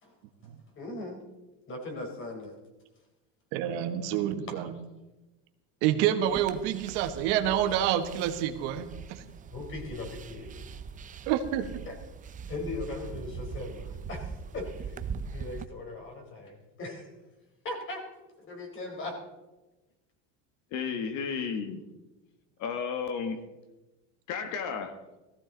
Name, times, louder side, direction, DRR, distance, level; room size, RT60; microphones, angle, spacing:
voice 1, 0.8-1.2 1.7-2.6 4.5-4.6 9.5-10.7 11.9-12.0 12.5-15.0 15.3-17.2 17.6-18.0 18.4-19.1, left 2 dB, 35° left, 2 dB, 4.2 m, -39 dB
voice 2, 3.5-4.7 5.8-9.2 11.3-11.7, right 10 dB, 85° right, 6 dB, 1.5 m, -28 dB
sound 1, 6.2-15.6, right 6 dB, 25° right, 0.6 m, -41 dB
voice 3, 20.7-21.8 22.6-23.4 24.3-24.9, left 6 dB, 60° left, 7 dB, 1.6 m, -33 dB
18.0 x 14.5 x 4.0 m, 1.1 s
cardioid pair, 145°, 34 cm